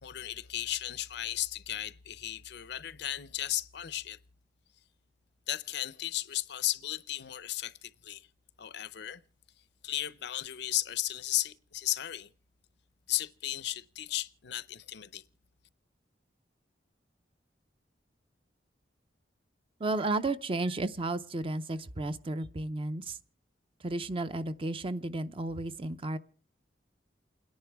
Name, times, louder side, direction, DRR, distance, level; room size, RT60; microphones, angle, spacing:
voice 1, 0.0-4.2 5.5-8.3 8.6-9.2 9.8-12.3 13.1-15.2, left 13 dB, 65° left, 0.6 m, -35 dB
voice 2, 19.8-23.2 23.8-26.2, right 2 dB, 30° right, 0.6 m, -33 dB
29.0 x 10.5 x 3.4 m
head